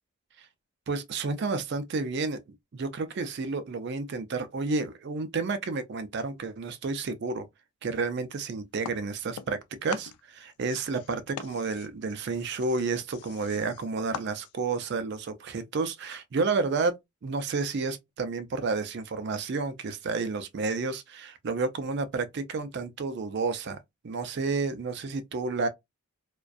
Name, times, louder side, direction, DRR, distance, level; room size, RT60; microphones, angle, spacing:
voice 1, 0.9-2.4 2.7-7.5 7.8-16.9 17.2-23.8 24.0-25.7, right 4 dB, 50° right, 0.4 m, -31 dB
sound 1, 8.8-9.6 9.9-14.8, left 8 dB, 85° left, 0.3 m, -43 dB
2.5 x 2.2 x 2.2 m
head